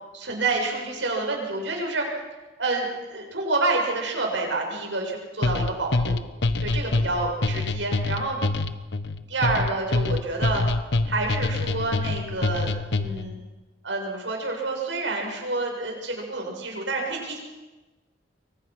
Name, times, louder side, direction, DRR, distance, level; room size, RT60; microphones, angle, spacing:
voice 1, 0.1-2.1 2.6-6.2 6.6-8.4 9.3-10.6 11.1-13.4 13.8-17.4, right 3 dB, 80° right, 1 dB, 7.5 m, -28 dB
sound 1, 5.4-13.3, left 2 dB, 70° left, 1.3 m, -25 dB
27.5 x 24.5 x 6.2 m, 1.1 s
head